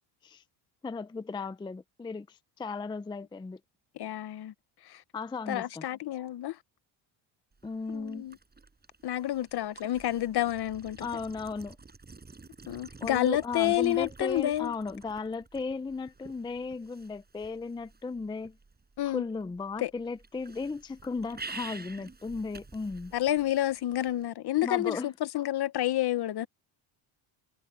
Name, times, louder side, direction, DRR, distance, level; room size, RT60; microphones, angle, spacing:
voice 1, 0.8-3.6 5.1-5.8 7.6-8.3 11.0-11.8 13.0-18.6 19.0-23.1 24.6-25.1, left 4 dB, 10° left, 0.4 m, -36 dB
voice 2, 4.0-4.5 4.8-5.0 5.5-6.6 7.9-8.4 9.0-11.1 12.7-14.7 19.0-19.2 19.8-19.9 23.1-26.5, left 13 dB, 50° left, 0.9 m, -29 dB
sound 1, 7.5-24.2, right 3 dB, 20° right, 5.4 m, -50 dB
cardioid pair, 125°, 49 cm